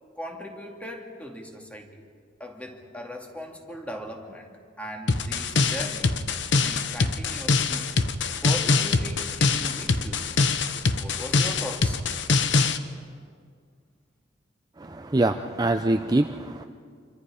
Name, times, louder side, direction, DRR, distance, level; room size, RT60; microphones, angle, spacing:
voice 1, 0.2-2.1 2.4-4.5 4.8-6.2 6.6-7.9 8.4-10.3 11.0-12.0, equal, 5° left, 2 dB, 2.3 m, -38 dB
sound 1, 5.1-12.8, left 4 dB, 70° left, 1.0 m, -24 dB
voice 2, 14.8-16.6, right 2 dB, 20° right, 6 dB, 0.6 m, -24 dB
27.0 x 24.5 x 5.0 m, 2.1 s
head